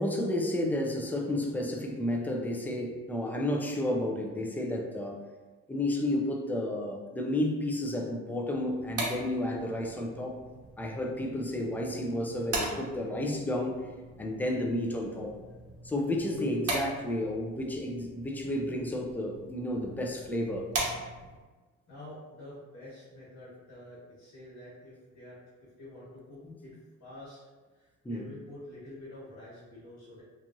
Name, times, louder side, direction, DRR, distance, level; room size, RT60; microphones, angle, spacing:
voice 1, 0.0-5.2 5.7-10.4 10.8-13.8 14.2-15.3 15.8-20.7 26.4-26.5 28.0-28.3, left 1 dB, 5° left, 1 dB, 0.4 m, -31 dB
sound 1, 8.6-21.5, right 2 dB, 50° right, 0.8 m, -40 dB
voice 2, 21.9-25.4 25.8-26.7 27.0-27.4 27.7-30.2, left 1 dB, 75° left, -9 dB, 1.2 m, -48 dB
2.9 x 2.5 x 2.6 m, 1.3 s
cardioid pair, 90°, 30 cm